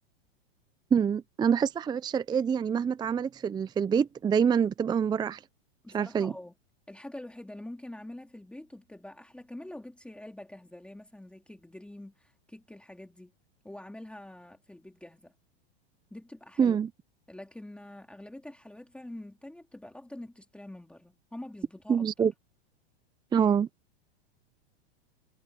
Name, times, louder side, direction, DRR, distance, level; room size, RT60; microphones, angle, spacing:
voice 1, 0.9-5.4 5.9-6.3 16.6-16.9 21.9-22.3 23.3-23.7, right 7 dB, 15° right, 0.6 m, -26 dB
voice 2, 5.8-6.5 6.9-13.3 13.6-15.3 16.1-16.8 17.3-22.3, left 1 dB, 5° left, 2.6 m, -45 dB
hypercardioid pair, 125°, 32 cm